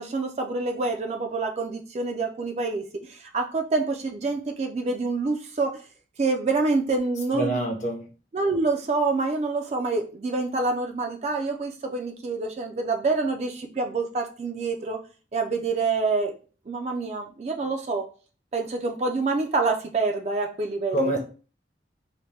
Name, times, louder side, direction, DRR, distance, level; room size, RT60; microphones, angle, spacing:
voice 1, 0.0-5.8 6.2-7.6 8.3-15.0 15.3-16.3 16.7-18.1 18.5-21.0, right 3 dB, 35° right, 4 dB, 0.3 m, -27 dB
voice 2, 7.3-8.0 20.9-21.2, right 1 dB, 40° left, 1 dB, 0.7 m, -25 dB
2.8 x 2.1 x 3.1 m, 0.37 s
head